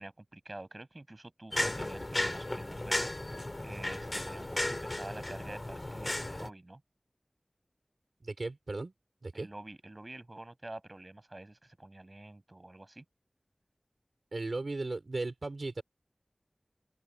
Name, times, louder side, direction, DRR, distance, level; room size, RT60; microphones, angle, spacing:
voice 1, 0.0-6.8 9.3-13.0, right 2 dB, 40° right, 7.2 m, -48 dB
sound 1, 1.5-6.5, left 1 dB, 40° left, 3.2 m, -35 dB
voice 2, 8.2-8.9 9.2-9.5 14.3-15.8, right 2 dB, 70° right, 4.9 m, -36 dB
wide cardioid pair, 50°, 0 cm